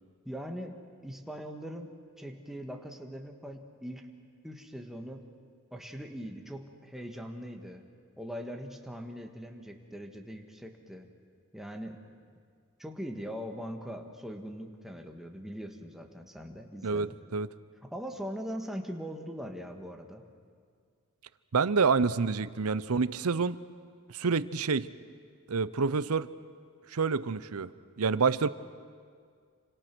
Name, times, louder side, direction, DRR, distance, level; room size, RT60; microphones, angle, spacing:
voice 1, 0.3-0.8 1.0-1.9 2.2-4.1 4.4-5.2 5.7-7.9 8.2-11.1 11.5-12.0 12.8-17.1 17.9-20.2, equal, ahead, 2 dB, 1.8 m, -41 dB
voice 2, 16.8-17.5 21.5-23.6 24.1-24.9 25.5-26.3 26.9-27.7 28.0-28.5, right 5 dB, 85° right, 16 dB, 0.7 m, -27 dB
28.5 x 25.5 x 6.2 m, 2.1 s
head